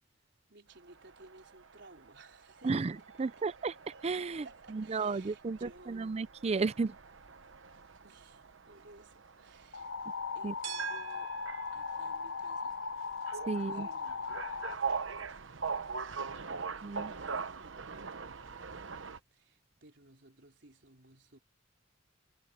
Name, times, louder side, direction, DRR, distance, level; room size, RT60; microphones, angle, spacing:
voice 1, 0.5-3.4 4.3-6.3 8.0-9.9 10.3-11.3 11.7-12.8 13.5-14.5 16.2-19.0 19.3-21.4, right 2 dB, 65° right, 4.4 m, -58 dB
sound 1, 0.9-19.2, right 5 dB, 80° right, 1.0 m, -43 dB
voice 2, 2.6-3.7 4.0-4.4 4.7-7.0 10.4-10.5 13.5-13.9 16.8-17.1, right 4 dB, 35° right, 0.4 m, -33 dB
sound 2, 9.7-14.8, left 5 dB, 75° left, 0.8 m, -38 dB
head